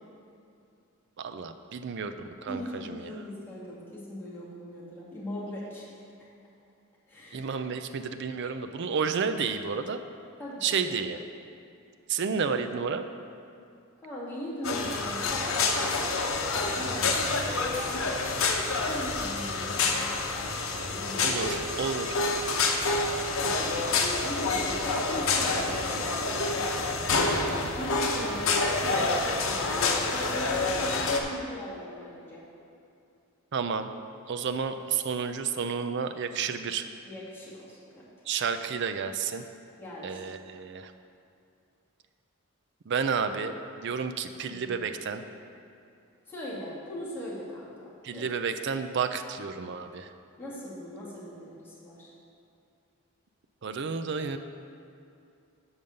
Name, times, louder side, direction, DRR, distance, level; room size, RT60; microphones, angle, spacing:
voice 1, 1.2-2.1 2.4-3.1 7.3-10.0 10.6-11.2 12.1-13.1 21.2-22.2 33.5-33.9 34.3-36.9 38.3-39.4 40.0-40.9 42.9-45.2 48.0-50.1 53.6-54.4, right 6 dB, 60° right, 8 dB, 0.4 m, -31 dB
voice 2, 2.5-5.9 7.1-7.6 10.4-11.0 14.0-15.8 16.5-18.1 18.8-20.2 20.7-21.5 23.4-27.1 27.4-32.4 37.1-38.1 39.8-40.2 44.5-44.9 46.3-47.7 48.1-48.3 50.4-52.1, equal, 10° left, -9 dB, 2.2 m, -40 dB
sound 1, 14.6-31.2, left 3 dB, 75° left, 0.8 m, -28 dB
7.2 x 5.4 x 6.5 m, 2.6 s
head